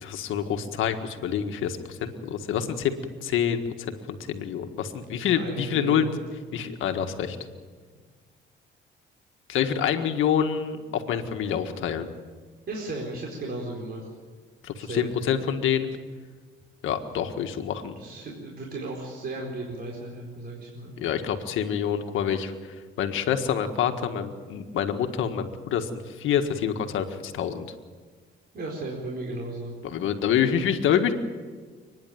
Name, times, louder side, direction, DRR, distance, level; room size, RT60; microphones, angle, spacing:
voice 1, 0.0-6.1 6.5-7.4 9.5-12.1 14.6-16.0 16.8-18.0 21.0-22.5 23.0-27.7 29.8-31.1, left 8 dB, 85° left, 6 dB, 1.7 m, -27 dB
voice 2, 5.3-6.1 12.7-14.1 14.8-15.1 18.0-20.9 28.5-29.7, right 2 dB, 50° right, -2 dB, 4.4 m, -35 dB
29.5 x 10.5 x 9.4 m, 1.5 s
cardioid pair, 90°, 20 cm